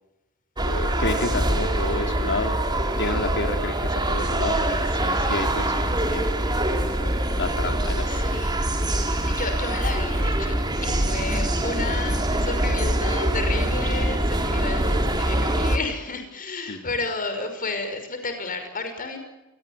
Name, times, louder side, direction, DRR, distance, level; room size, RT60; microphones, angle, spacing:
voice 1, 0.6-2.6 3.0-7.1 7.4-8.0 16.7-16.8, left 2 dB, 55° left, 5 dB, 3.5 m, -30 dB
sound 1, 0.6-15.8, right 1 dB, 20° right, 3.3 m, -24 dB
voice 2, 8.1-8.7 9.2-10.5 10.8-19.2, left 3 dB, 40° left, 7 dB, 5.7 m, -32 dB
28.0 x 19.5 x 9.4 m, 0.97 s
head